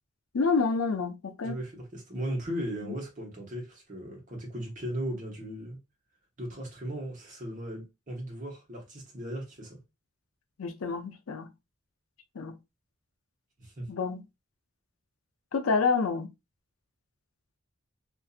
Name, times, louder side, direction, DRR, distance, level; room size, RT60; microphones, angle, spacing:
voice 1, 0.3-1.6 10.6-11.5 12.4-12.5 13.9-14.2 15.5-16.3, left 4 dB, 90° left, 0.5 m, -28 dB
voice 2, 1.4-5.8 6.4-9.8 13.6-13.9, equal, 40° right, 1.1 m, -37 dB
2.7 x 2.6 x 2.4 m
head